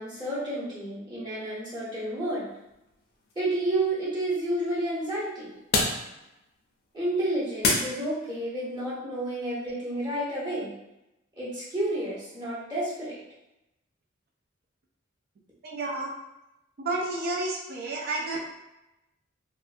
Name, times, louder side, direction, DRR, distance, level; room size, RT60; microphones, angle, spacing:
voice 1, 0.0-2.5 3.3-5.5 6.9-10.7 11.4-13.2, right 1 dB, 25° right, -10 dB, 1.2 m, -30 dB
sound 1, 2.4-8.5, left 3 dB, 50° left, 0.5 m, -33 dB
voice 2, 15.6-16.1 16.8-18.4, right 2 dB, 50° right, -1 dB, 0.4 m, -30 dB
2.4 x 2.3 x 2.6 m, 0.93 s
head